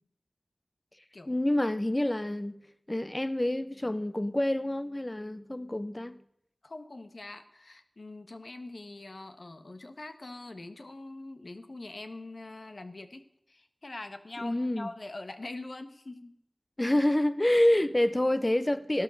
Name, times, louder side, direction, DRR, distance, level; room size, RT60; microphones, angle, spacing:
voice 1, 1.3-2.6 2.9-6.2 14.4-14.9 16.8-19.0, left 1 dB, 30° left, 0.8 m, -27 dB
voice 2, 6.6-16.3, left 2 dB, 65° left, 1.5 m, -43 dB
17.0 x 12.0 x 6.5 m
wide cardioid pair, 40°, 0 cm